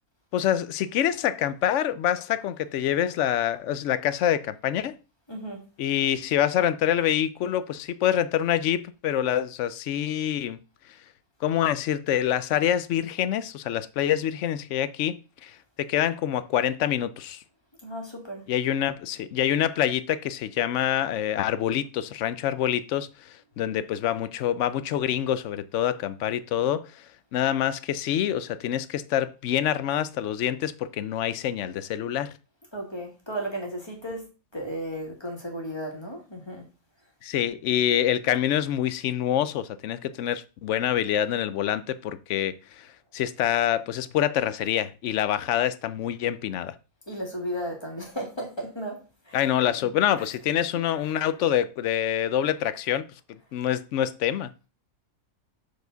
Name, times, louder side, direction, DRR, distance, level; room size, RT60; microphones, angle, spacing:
voice 1, 0.3-5.0 5.8-10.6 11.4-15.2 15.4-17.4 18.5-27.1 27.3-32.3 37.2-42.9 43.1-46.7 49.3-54.5, left 10 dB, 65° left, 0.8 m, -26 dB
voice 2, 5.3-5.6 17.8-18.4 32.7-34.2 34.5-36.6 47.1-49.0 49.3-49.5 49.8-50.4 50.9-51.3, right 1 dB, 20° left, 2.0 m, -35 dB
6.5 x 4.9 x 3.9 m
omnidirectional pair, 1.5 m